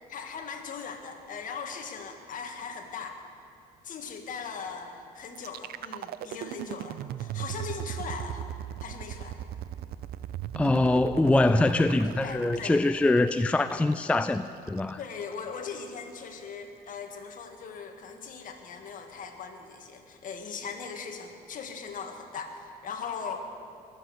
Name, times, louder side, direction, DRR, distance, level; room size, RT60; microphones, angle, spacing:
voice 1, 0.1-3.2 3.8-8.5 8.8-9.4 12.2-12.8 15.0-23.4, left 5 dB, 50° left, 5 dB, 1.8 m, -39 dB
sound 1, 5.4-15.3, right 11 dB, 65° right, 0.5 m, -38 dB
voice 2, 10.6-15.0, left 2 dB, 5° left, 10 dB, 0.3 m, -24 dB
22.5 x 7.7 x 7.8 m, 2.7 s
cardioid pair, 110°, 17 cm